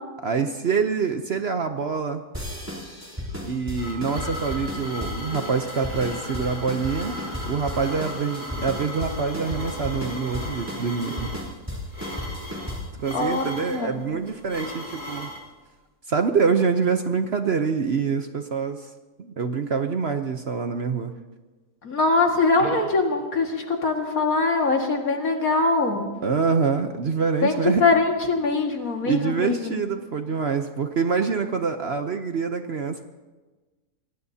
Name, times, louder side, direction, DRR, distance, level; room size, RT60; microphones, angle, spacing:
voice 1, 0.2-2.2 3.4-11.3 13.0-15.3 16.1-18.9 19.2-21.1 26.2-27.8 29.1-33.0, right 5 dB, 50° right, 7 dB, 0.9 m, -25 dB
sound 1, 2.3-13.0, left 1 dB, 10° right, 3.1 m, -34 dB
sound 2, 3.3-15.4, left 1 dB, 30° left, 3.7 m, -36 dB
voice 2, 13.1-14.0 21.8-26.0 27.4-29.7, left 3 dB, 65° left, 2 dB, 2.4 m, -22 dB
Coin (dropping), 22.5-23.3 29.4-29.6, right 1 dB, 65° right, 3.8 m, -38 dB
26.0 x 19.0 x 2.8 m, 1.3 s
omnidirectional pair, 1.6 m